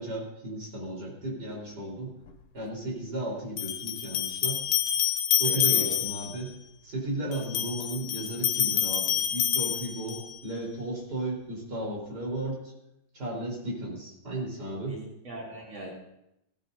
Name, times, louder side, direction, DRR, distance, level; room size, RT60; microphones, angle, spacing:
voice 1, 0.0-2.1 2.5-4.6 5.4-6.5 6.8-12.7 13.1-15.0, right 1 dB, 50° right, -3 dB, 4.7 m, -34 dB
sound 1, 2.3-2.4 3.6-6.4 7.3-10.4, left 9 dB, 75° left, 1.6 m, -27 dB
voice 2, 5.4-6.0 7.2-7.3 14.9-15.9, right 1 dB, 65° right, -4 dB, 3.9 m, -41 dB
17.0 x 15.5 x 2.7 m, 0.82 s
omnidirectional pair, 2.3 m